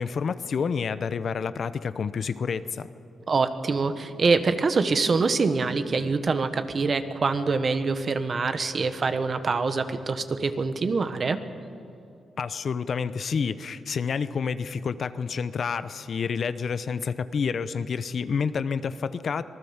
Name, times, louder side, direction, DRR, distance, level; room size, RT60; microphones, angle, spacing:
voice 1, 0.0-2.9 12.4-19.4, left 6 dB, 60° left, 13 dB, 0.9 m, -29 dB
voice 2, 3.3-11.4, right 4 dB, 45° right, 9 dB, 1.5 m, -25 dB
26.0 x 19.5 x 7.3 m, 2.6 s
cardioid pair, 95°, 0 cm